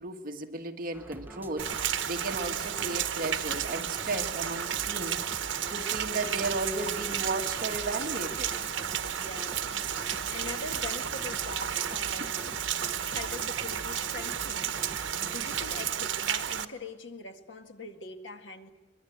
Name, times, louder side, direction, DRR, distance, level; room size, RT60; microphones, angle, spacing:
voice 1, 0.0-1.7 2.1-8.5 12.2-12.3, right 2 dB, 50° right, 3 dB, 1.8 m, -35 dB
sound 1, 0.9-15.9, right 1 dB, 10° right, 1.0 m, -46 dB
Rain, 1.6-16.7, right 9 dB, 85° right, 1.1 m, -32 dB
voice 2, 9.2-9.9 10.3-12.5 13.0-14.8 15.2-18.7, left 3 dB, 75° left, 5 dB, 2.0 m, -43 dB
23.5 x 22.5 x 8.1 m, 1.1 s
head